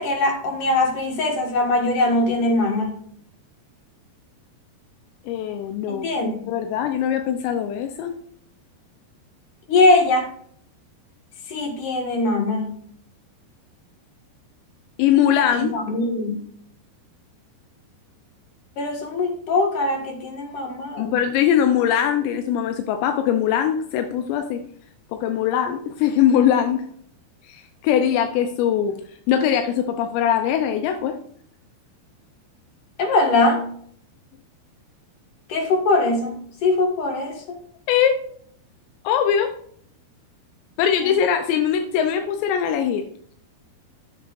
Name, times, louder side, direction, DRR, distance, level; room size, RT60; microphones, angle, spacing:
voice 1, 0.0-3.0 5.9-6.5 9.7-10.3 11.5-12.8 15.5-16.5 18.8-21.2 33.0-33.6 35.5-36.3 36.6-37.6 41.0-41.1, left 2 dB, 55° left, 2 dB, 2.9 m, -21 dB
voice 2, 5.3-6.1 6.5-8.1 15.0-15.7 21.0-24.6 25.1-26.8 27.5-28.9 29.3-31.1 37.9-38.1 39.0-39.5 40.8-43.0, left 9 dB, 85° left, 6 dB, 3.0 m, -21 dB
15.0 x 7.4 x 2.5 m, 0.63 s
omnidirectional pair, 5.0 m